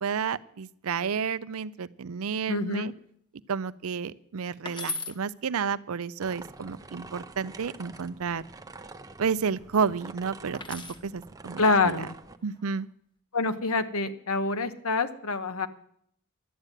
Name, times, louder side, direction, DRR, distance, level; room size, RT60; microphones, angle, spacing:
voice 1, 0.0-2.9 3.5-8.5 9.2-12.0 12.4-12.9, right 6 dB, 70° right, 16 dB, 0.5 m, -31 dB
voice 2, 2.5-2.9 11.6-12.1 13.3-15.7, left 3 dB, 70° left, 10 dB, 1.0 m, -26 dB
sound 1, 4.7-5.2 7.4-8.0 10.5-11.1 12.4-12.8, left 3 dB, 20° left, 0.9 m, -37 dB
sound 2, 6.2-12.4, right 3 dB, 15° right, 0.6 m, -46 dB
12.0 x 7.8 x 9.0 m, 0.67 s
head